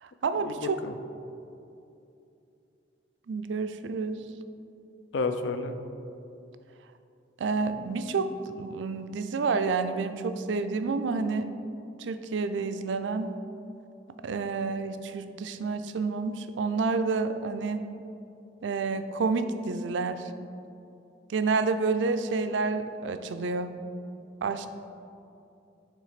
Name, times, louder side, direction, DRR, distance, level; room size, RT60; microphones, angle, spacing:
voice 1, 0.0-0.8 3.3-4.2 7.4-11.5 12.0-13.3 14.2-17.8 18.6-20.3 21.3-23.7 24.4-24.7, right 4 dB, 85° right, 10 dB, 0.4 m, -29 dB
voice 2, 5.1-5.8, left 3 dB, 80° left, 9 dB, 0.5 m, -30 dB
7.3 x 3.3 x 5.7 m, 2.7 s
head